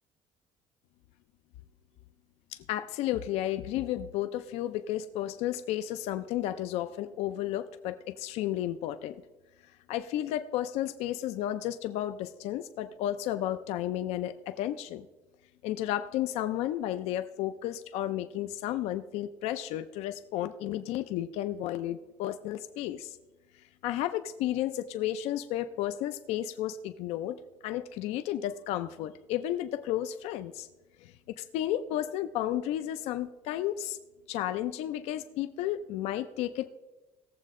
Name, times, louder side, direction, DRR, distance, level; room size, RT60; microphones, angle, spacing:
voice 1, 2.5-9.2 9.9-15.1 15.6-23.2 23.8-30.7 31.0-34.0 34.3-36.7, left 12 dB, 80° left, 11 dB, 0.5 m, -33 dB
18.0 x 7.5 x 3.6 m, 1.2 s
cardioid pair, 165°, 11 cm